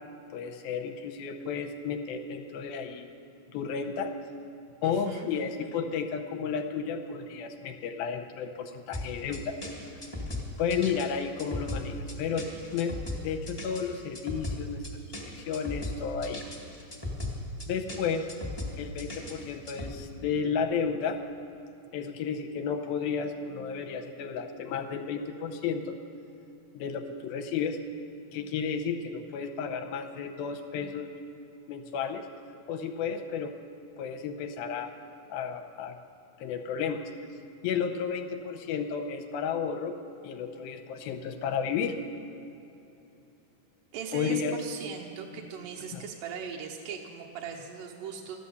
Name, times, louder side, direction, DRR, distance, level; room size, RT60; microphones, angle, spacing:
voice 1, 0.3-3.1 3.5-4.1 4.8-9.6 10.6-12.5 12.7-13.0 13.2-14.8 15.2-16.4 17.7-18.3 18.8-21.2 21.9-26.0 26.7-27.8 28.3-31.1 31.7-32.3 32.7-33.5 34.0-34.9 35.3-36.0 36.4-37.0 37.6-40.0 40.2-42.0 44.1-44.6 45.9-46.0, left 6 dB, 80° left, 6 dB, 2.5 m, -32 dB
voice 2, 4.8-5.3 43.9-48.4, right 6 dB, 75° right, 0 dB, 2.0 m, -39 dB
sound 1, 8.9-19.9, left 2 dB, 15° left, 0.8 m, -37 dB
14.0 x 11.0 x 7.0 m, 2.9 s
omnidirectional pair, 4.5 m